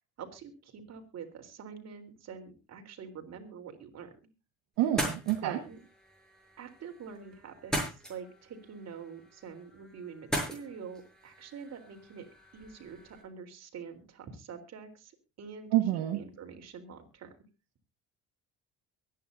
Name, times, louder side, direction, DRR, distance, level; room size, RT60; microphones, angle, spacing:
voice 1, 0.2-4.1 5.4-5.8 6.6-12.3 12.5-15.1 15.4-17.3, right 6 dB, 55° right, 5 dB, 3.9 m, -45 dB
sound 1, 4.8-13.2, equal, ahead, 7.1 m, -40 dB
voice 2, 4.8-5.6 15.7-16.2, right 13 dB, 80° right, 3 dB, 1.7 m, -27 dB
23.5 x 10.0 x 2.7 m, 0.29 s
supercardioid pair, 80°, 32 cm